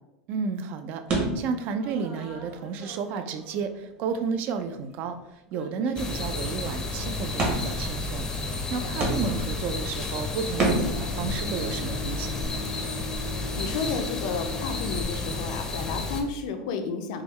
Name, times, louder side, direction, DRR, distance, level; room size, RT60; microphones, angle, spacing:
voice 1, 0.3-5.2 5.5-12.6, right 5 dB, 50° right, 8 dB, 0.4 m, -32 dB
sound 1, 1.1-3.7 4.0-4.1 4.7-4.9 5.2-5.3 5.5-6.4 7.4-7.9 8.6-8.7 9.0-9.6 10.6-11.0, right 2 dB, 35° right, 1.0 m, -30 dB
sound 2, 6.0-16.2, left 3 dB, 15° left, 0.5 m, -31 dB
Bowed string instrument, 10.3-15.2, left 2 dB, 85° right, 0.9 m, -40 dB
voice 2, 13.2-17.2, left 4 dB, 70° left, 7 dB, 0.4 m, -32 dB
3.5 x 2.2 x 3.1 m, 0.91 s
supercardioid pair, 120°, 4 cm